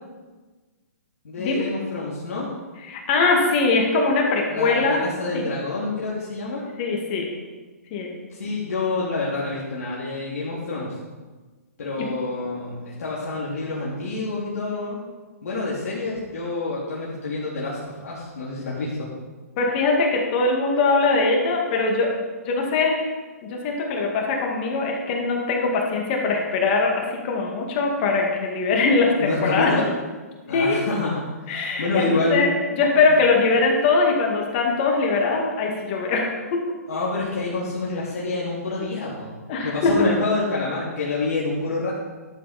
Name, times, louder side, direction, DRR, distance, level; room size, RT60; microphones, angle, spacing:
voice 1, 1.2-2.5 4.5-6.6 8.3-10.9 11.8-15.0 15.4-19.1 29.2-29.8 30.5-32.5 36.9-39.3 39.6-41.9, left 3 dB, 65° left, -7 dB, 2.7 m, -27 dB
voice 2, 2.9-5.0 5.3-5.4 6.8-7.3 7.9-8.1 19.6-22.1 22.4-23.1 23.4-29.7 30.5-30.8 31.5-31.9 32.3-32.5 32.8-36.6 39.5-40.1, left 3 dB, 40° left, 0 dB, 2.2 m, -21 dB
12.0 x 7.9 x 4.3 m, 1.3 s
hypercardioid pair, 135°, 9 cm